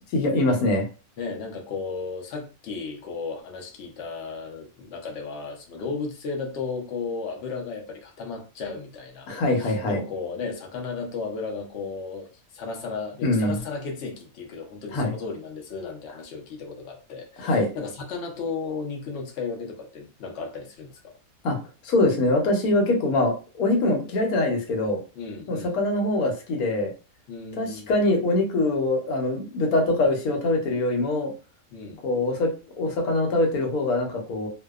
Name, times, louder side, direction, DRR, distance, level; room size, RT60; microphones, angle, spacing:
voice 1, 0.1-0.9 9.3-10.0 13.2-13.6 14.9-15.1 17.4-17.7 21.4-21.6 21.8-25.0 25.5-26.9 27.6-31.3 32.0-32.5 32.8-34.5, left 2 dB, 85° left, 2 dB, 1.2 m, -23 dB
voice 2, 1.2-9.3 9.6-12.3 12.5-20.9 25.1-25.8 27.3-27.9 31.7-32.0, left 4 dB, 60° left, 1 dB, 0.8 m, -34 dB
2.6 x 2.1 x 2.3 m, 0.34 s
omnidirectional pair, 1.5 m